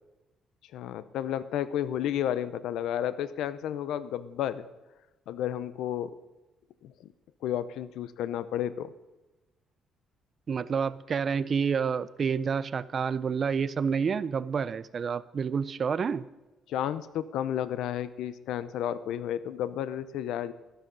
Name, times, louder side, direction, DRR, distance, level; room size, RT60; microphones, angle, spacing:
voice 1, 0.7-4.6 5.3-6.2 6.8-6.9 7.4-8.9 16.7-20.5, left 10 dB, 85° left, 15 dB, 0.6 m, -32 dB
voice 2, 10.5-16.3, right 6 dB, 35° right, 17 dB, 0.4 m, -29 dB
12.5 x 11.5 x 5.3 m, 1.1 s
cardioid pair, 145°, 0 cm